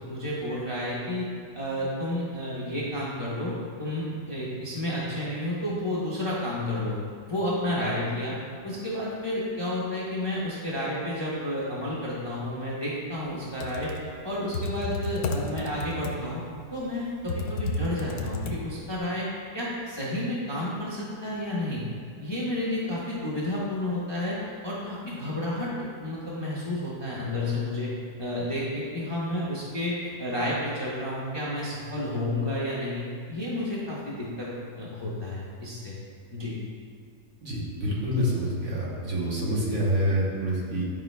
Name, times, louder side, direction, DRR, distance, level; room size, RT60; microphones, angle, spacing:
voice 1, 0.1-1.2 1.5-3.5 3.8-7.0 7.3-8.4 8.6-13.9 14.2-16.4 16.7-19.3 19.5-21.8 22.2-27.9 28.2-34.5 34.8-36.0 36.3-36.6, left 1 dB, 20° left, -7 dB, 0.7 m, -31 dB
Computer keyboard, 13.4-19.0, left 2 dB, 85° left, 1.2 m, -33 dB
voice 2, 37.4-40.8, equal, 55° right, -5 dB, 1.5 m, -27 dB
11.0 x 4.9 x 2.2 m, 2.1 s
omnidirectional pair, 1.8 m